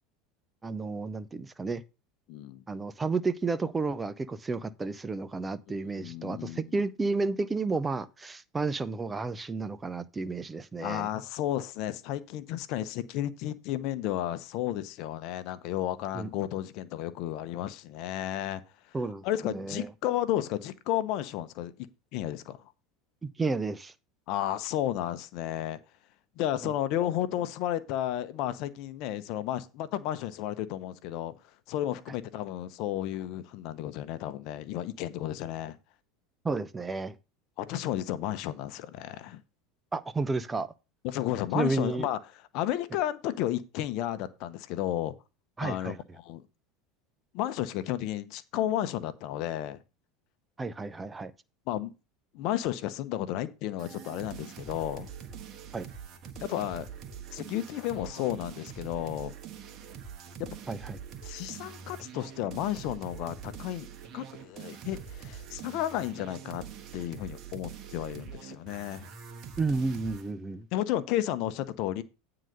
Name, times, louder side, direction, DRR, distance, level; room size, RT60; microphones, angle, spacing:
voice 1, 0.6-1.8 2.7-11.1 16.1-16.3 18.9-19.9 23.2-23.9 26.6-26.7 36.4-37.1 39.9-40.7 41.5-42.1 45.6-46.0 50.6-51.3 55.7-55.9 60.7-61.0 69.6-70.7, right 3 dB, 20° right, 0.8 m, -32 dB
voice 2, 2.3-2.6 5.7-6.7 10.8-18.6 19.2-21.9 22.1-22.6 24.3-25.8 26.4-31.3 31.7-35.8 37.6-39.4 41.0-42.2 42.5-45.1 45.6-46.4 47.3-49.8 51.7-51.9 52.3-55.1 56.4-56.9 57.3-59.3 61.2-66.6 66.9-69.1 70.7-72.0, left 12 dB, 60° left, 0.9 m, -32 dB
sound 1, 53.8-70.3, right 7 dB, 45° right, 1.5 m, -44 dB
9.1 x 3.9 x 6.5 m
hypercardioid pair, 90°, 0 cm